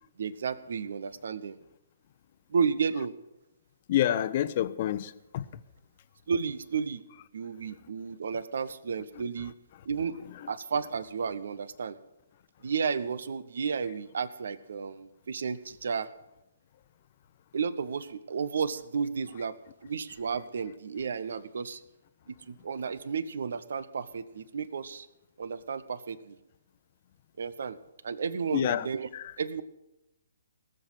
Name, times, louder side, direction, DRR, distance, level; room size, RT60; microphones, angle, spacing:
voice 1, 0.2-1.6 2.5-3.1 6.3-7.0 7.3-9.5 9.8-10.2 10.5-12.0 12.6-16.1 17.5-19.6 19.8-21.8 22.3-25.1 25.4-26.4 27.4-27.8 28.0-29.1 29.4-29.6, right 6 dB, 60° right, 0.9 m, -32 dB
voice 2, 3.9-5.4 28.5-28.9 29.1-29.3, left 12 dB, 45° left, 0.8 m, -28 dB
18.5 x 7.7 x 8.0 m
figure-of-eight pair, 130°, 0 cm